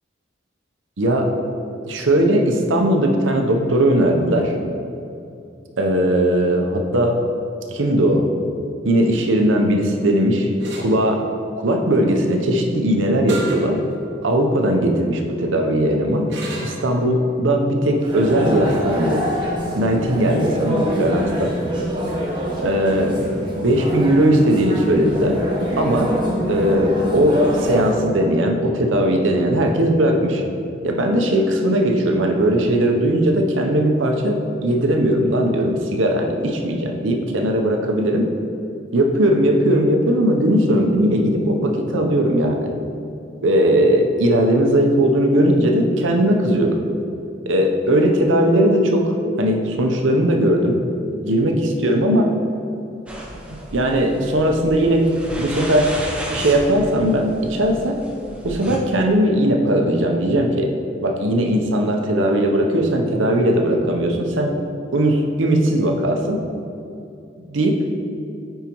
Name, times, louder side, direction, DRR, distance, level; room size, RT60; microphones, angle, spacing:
voice 1, 1.0-1.3 1.9-4.5 5.8-7.2 7.7-8.3 8.8-10.5 10.8-11.2 11.6-13.8 14.2-16.3 16.6-19.3 19.8-21.6 22.6-23.3 23.6-25.4 25.8-26.2 26.5-30.4 30.8-38.3 38.9-42.7 43.4-46.8 47.5-50.8 51.1-52.3 53.5-58.0 58.4-60.7 61.0-64.6 64.9-66.4 67.5-67.9, right 1 dB, 85° right, 3 dB, 0.7 m, -18 dB
sound 1, 10.6-10.9 13.3-13.7 14.2-14.3 16.3-16.8, right 3 dB, 70° right, 1.2 m, -32 dB
sound 2, 18.0-27.9, equal, 25° right, 1.1 m, -25 dB
sound 3, 53.1-58.8, right 1 dB, 5° right, 0.6 m, -33 dB
9.1 x 4.7 x 3.0 m, 2.6 s
head